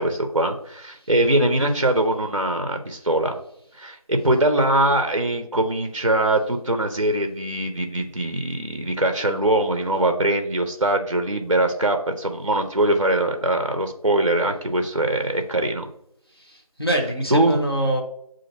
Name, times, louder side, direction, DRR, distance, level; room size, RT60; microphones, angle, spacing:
voice 1, 0.0-3.4 3.7-15.9 17.3-17.6, right 1 dB, 55° right, 6 dB, 0.5 m, -22 dB
voice 2, 16.4-18.0, right 1 dB, 40° left, -1 dB, 0.8 m, -24 dB
6.7 x 2.5 x 2.8 m, 0.74 s
figure-of-eight pair, 180°, 19 cm